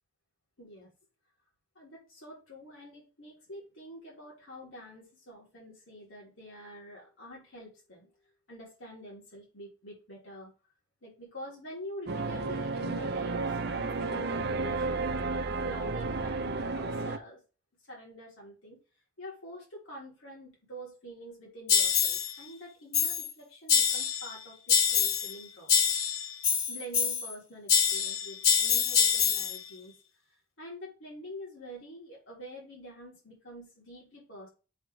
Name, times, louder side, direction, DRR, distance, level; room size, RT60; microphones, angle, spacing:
voice 1, 0.6-0.9 1.8-8.1 8.5-10.5 11.0-15.1 15.6-17.4 17.9-18.8 19.2-25.7 26.7-29.9 30.3-34.5, equal, 70° left, -3 dB, 3.5 m, -46 dB
sound 1, 12.1-17.2, right 3 dB, 50° right, 0.7 m, -32 dB
sound 2, 21.7-22.3 22.9-23.3 23.7-24.3 24.7-25.4 25.7-27.3 27.7-29.6, left 7 dB, 90° left, 0.9 m, -25 dB
7.9 x 3.3 x 4.9 m, 0.33 s
head